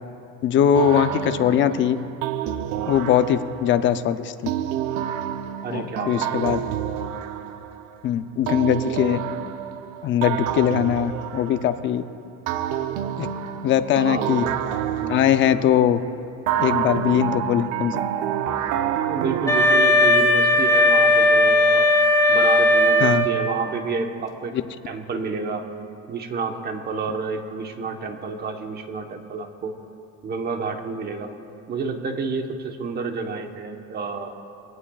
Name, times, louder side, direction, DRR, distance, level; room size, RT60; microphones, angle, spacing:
voice 1, 0.4-2.0 2.9-4.3 5.7-6.6 8.0-9.2 10.0-12.0 13.2-13.3 13.6-14.4 15.1-16.0 16.6-18.0 23.0-23.3, left 9 dB, 35° left, 10 dB, 0.6 m, -21 dB
sound 1, 0.7-3.8 4.5-8.0 8.5-12.0 12.5-15.9 16.5-19.8, right 10 dB, 70° right, 0.8 m, -28 dB
voice 2, 5.6-6.4 14.0-14.6 15.0-15.2 19.0-21.9 22.3-24.5 24.9-25.7 26.1-29.7 30.2-31.3 31.7-34.3, right 4 dB, 30° right, 5 dB, 1.1 m, -29 dB
Wind instrument woodwind instrument, 19.5-23.7, left 1 dB, 10° left, 1.5 m, -17 dB
22.0 x 17.5 x 2.4 m, 2.6 s
cardioid pair, 150°, 32 cm